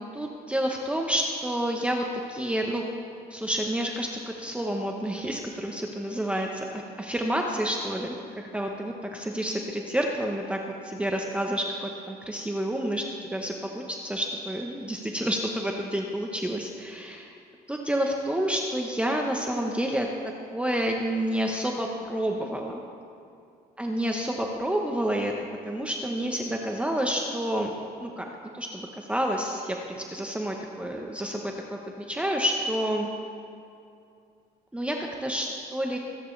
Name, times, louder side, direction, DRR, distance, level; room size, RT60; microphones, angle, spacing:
voice 1, 0.1-2.8 3.3-6.6 7.0-17.3 17.7-20.1 20.5-22.8 23.8-25.3 25.6-27.7 28.0-28.3 28.5-33.1 34.7-36.0, equal, 5° right, 1 dB, 0.9 m, -29 dB
23.5 x 9.6 x 3.3 m, 2.5 s
cardioid pair, 110°, 17 cm